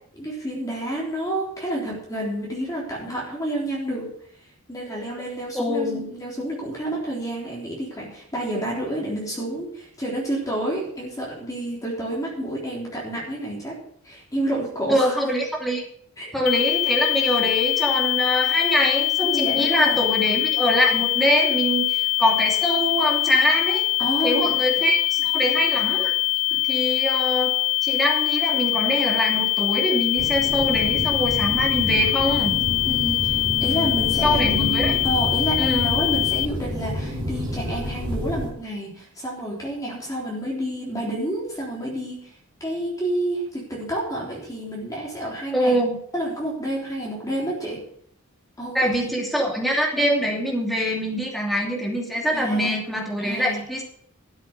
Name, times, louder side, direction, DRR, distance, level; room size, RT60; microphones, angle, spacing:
voice 1, 0.2-4.1 4.7-13.8 14.0-15.1 16.2-16.3 19.2-20.0 24.0-24.6 26.5-26.6 32.8-42.3 42.6-45.8 46.1-47.8 48.6-48.8 49.0-49.1 52.3-52.8 53.2-53.6, right 1 dB, 15° left, -4 dB, 3.6 m, -29 dB
voice 2, 5.5-6.1 14.9-15.8 16.3-23.8 24.2-26.1 26.6-27.5 27.8-32.6 34.2-35.0 35.6-35.9 45.5-46.0 48.7-53.8, equal, ahead, -2 dB, 2.6 m, -23 dB
sound 1, 16.5-36.5, left 20 dB, 80° left, 0.4 m, -23 dB
sound 2, 30.2-38.5, equal, 20° right, 3.1 m, -29 dB
12.5 x 7.6 x 6.6 m, 0.65 s
head